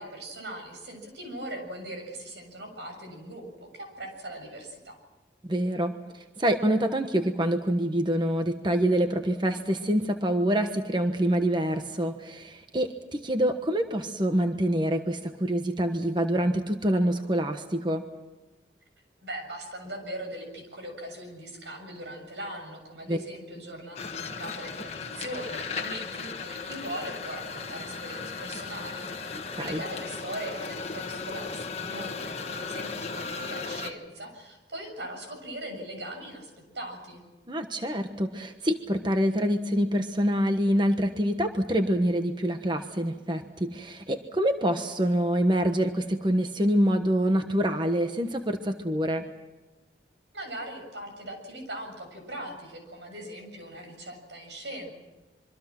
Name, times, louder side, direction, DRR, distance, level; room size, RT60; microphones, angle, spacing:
voice 1, 0.0-3.5 3.7-5.0 19.2-37.2 50.3-54.9, right 1 dB, 85° right, 4 dB, 7.2 m, -40 dB
voice 2, 5.5-18.0 23.1-23.2 29.6-29.8 37.5-49.2, equal, 25° right, 6 dB, 1.3 m, -26 dB
sound 1, 24.0-33.9, left 4 dB, 35° left, 1.5 m, -36 dB
26.0 x 24.5 x 6.2 m, 1.2 s
head